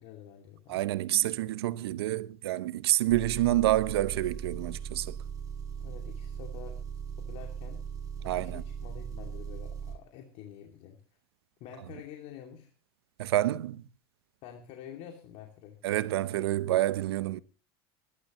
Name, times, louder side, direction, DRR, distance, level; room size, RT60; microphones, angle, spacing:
voice 1, 0.0-0.8 5.8-6.8 7.2-7.9 8.2-11.0 11.6-12.7 14.4-15.8, left 9 dB, 60° left, 2.6 m, -48 dB
voice 2, 0.7-5.2 8.2-8.6 13.2-13.8 15.8-17.4, right 14 dB, 85° right, 0.8 m, -28 dB
Engine, 3.1-10.0, right 7 dB, 25° right, 5.9 m, -39 dB
24.0 x 11.5 x 3.0 m
supercardioid pair, 100°, 13 cm